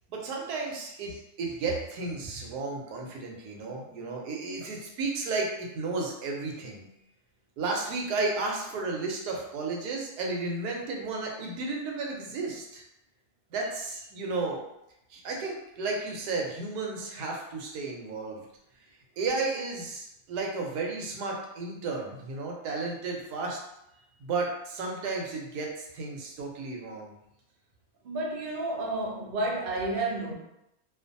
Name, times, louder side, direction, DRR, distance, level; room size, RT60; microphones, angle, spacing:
voice 1, 0.1-6.9 7.6-12.8 13.5-14.6 15.1-18.4 19.2-23.6 24.2-27.2, right 3 dB, 85° right, 0 dB, 1.2 m, -33 dB
voice 2, 28.0-30.3, right 2 dB, 60° right, -2 dB, 0.6 m, -31 dB
2.5 x 2.5 x 2.5 m, 0.82 s
omnidirectional pair, 1.7 m